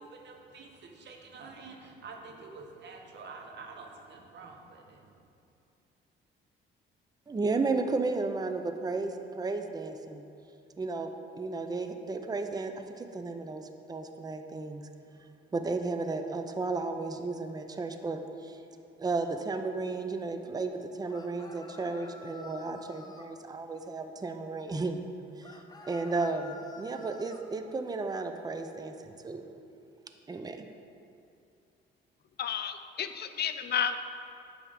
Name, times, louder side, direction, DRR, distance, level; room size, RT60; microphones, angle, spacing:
voice 1, 0.0-5.1, right 4 dB, 60° right, 2 dB, 1.1 m, -48 dB
voice 2, 7.3-10.2 10.8-14.8 15.5-18.6 19.0-25.1 25.4-25.6 25.9-29.4 30.3-30.7, right 3 dB, 20° right, 7 dB, 0.5 m, -34 dB
sound 1, 21.1-23.3 25.4-27.4, left 3 dB, 20° left, 0.6 m, -49 dB
voice 3, 32.4-34.0, left 8 dB, 55° left, 9 dB, 0.5 m, -31 dB
8.9 x 3.5 x 6.3 m, 2.6 s
cardioid pair, 90°, 20 cm